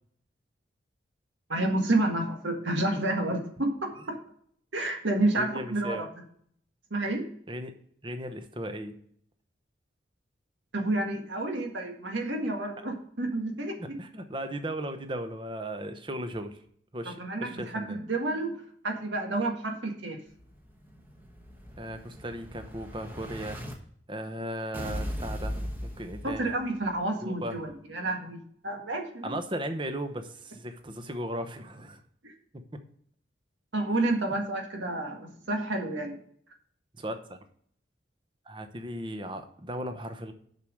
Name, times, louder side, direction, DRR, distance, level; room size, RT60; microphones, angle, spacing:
voice 1, 1.5-4.2 4.7-6.1 6.9-7.2 10.7-14.0 17.2-18.5 18.8-20.2 26.2-28.4 28.6-29.4 32.2-32.3 33.7-36.2, right 2 dB, 85° right, 3 dB, 1.8 m, -30 dB
voice 2, 5.4-6.1 7.5-7.8 8.0-9.0 13.8-16.6 16.9-18.0 21.8-23.6 24.1-26.6 27.2-27.7 29.2-32.0 37.0-37.4 38.5-40.3, right 1 dB, 25° right, 7 dB, 0.9 m, -36 dB
Explosion, 20.4-23.7 24.7-26.8, equal, 10° right, 1.2 m, -38 dB
6.7 x 6.1 x 6.4 m, 0.63 s
head